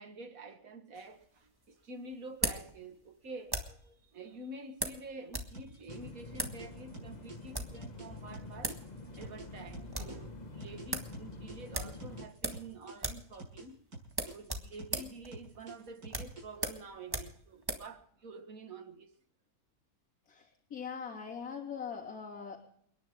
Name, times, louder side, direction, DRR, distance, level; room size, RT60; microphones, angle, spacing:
voice 1, 0.0-8.8 9.2-13.8 14.2-19.1, right 2 dB, 65° right, 2.1 m, -48 dB
sound 1, 0.9-3.9 4.8-5.5 5.8-5.9 6.3-6.6 7.3-7.8 8.4-8.5 8.6-8.9 9.2-9.3 9.6-10.2 10.5-10.6 10.9-11.1 11.7-12.7 13.0-13.3 13.6-13.7 14.1-17.9, right 1 dB, 15° right, 1.8 m, -38 dB
sound 2, 5.5-10.2 10.6-13.7 13.9-16.6, right 2 dB, 85° right, 6.9 m, -48 dB
sound 3, 5.9-12.3, left 3 dB, 30° left, 1.3 m, -47 dB
voice 2, 20.3-22.6, left 6 dB, 70° left, 3.5 m, -41 dB
29.5 x 10.5 x 3.7 m
omnidirectional pair, 1.6 m